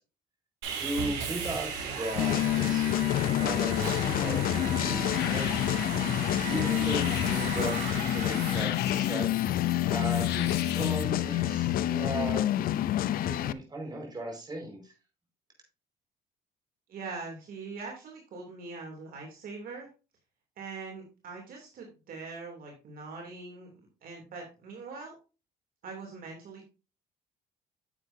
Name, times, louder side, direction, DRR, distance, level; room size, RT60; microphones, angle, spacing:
Sawing, 0.6-8.6, right 5 dB, 90° right, 3.3 m, -36 dB
voice 1, 0.8-5.7 6.5-9.3 9.9-10.5 10.7-12.5 13.2-14.9, right 2 dB, 25° right, 1 dB, 5.0 m, -37 dB
sound 1, 2.2-13.5, left 12 dB, 60° left, 0.5 m, -28 dB
sound 2, 4.2-11.0, left 11 dB, 80° left, 1.1 m, -40 dB
voice 2, 16.9-19.9 20.6-23.7 24.0-25.1 25.8-26.7, right 4 dB, 60° right, 1 dB, 2.9 m, -42 dB
10.0 x 8.0 x 2.7 m, 0.31 s
cardioid pair, 110°, 17 cm